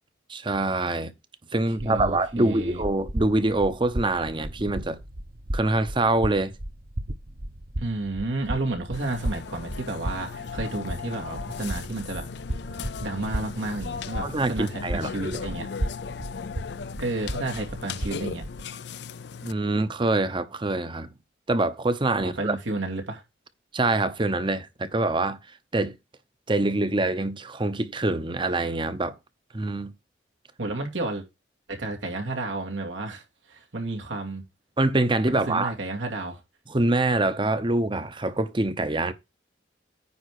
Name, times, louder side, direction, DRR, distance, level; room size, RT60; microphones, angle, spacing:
voice 1, 0.3-1.1 1.5-5.0 5.5-6.5 14.2-15.4 19.4-21.1 21.5-22.6 23.7-25.4 25.7-26.0 26.5-29.1 29.5-29.9 34.8-35.7 36.7-39.1, right 2 dB, 25° right, 0.8 m, -25 dB
sound 1, 1.8-18.6, right 1 dB, 55° right, 1.2 m, -35 dB
voice 2, 1.8-2.8 7.8-12.3 12.8-15.7 17.0-18.4 22.2-23.2 30.6-31.3 31.7-33.2 33.5-34.4 35.3-36.4, right 2 dB, 90° right, 2.4 m, -31 dB
Burping eructation, 8.9-19.5, left 6 dB, 60° left, 0.4 m, -37 dB
9.6 x 3.7 x 6.3 m
head